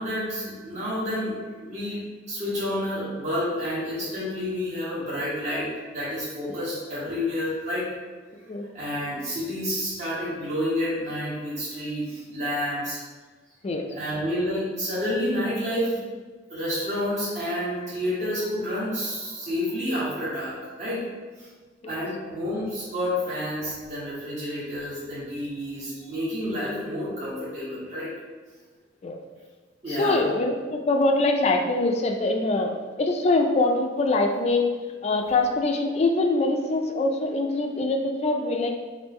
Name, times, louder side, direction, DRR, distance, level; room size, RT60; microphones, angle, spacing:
voice 1, 0.0-2.0 2.3-7.9 8.7-13.0 13.9-16.0 16.5-21.1 21.4-21.5 21.9-28.1 29.8-30.3, equal, 40° right, -10 dB, 1.3 m, -29 dB
voice 2, 29.9-32.7 33.0-34.7 35.0-38.7, left 2 dB, 35° left, 3 dB, 0.3 m, -23 dB
3.5 x 2.6 x 4.1 m, 1.4 s
head